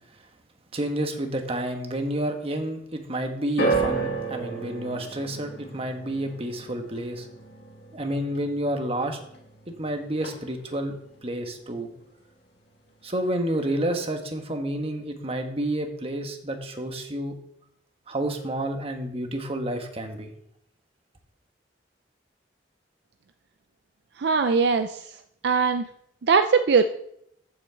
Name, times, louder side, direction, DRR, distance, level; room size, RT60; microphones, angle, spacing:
voice 1, 0.7-7.3 7.9-9.2 9.7-11.0 11.2-11.9 13.0-17.4 18.1-20.3, right 1 dB, 35° right, 5 dB, 1.3 m, -29 dB
sound 1, 3.6-9.9 10.1-10.8 11.5-11.6, right 3 dB, 65° left, 2.2 m, -32 dB
voice 2, 24.2-25.0 25.4-25.8 26.2-26.8, right 5 dB, 65° right, 8 dB, 0.5 m, -20 dB
7.2 x 6.1 x 7.5 m, 0.73 s
head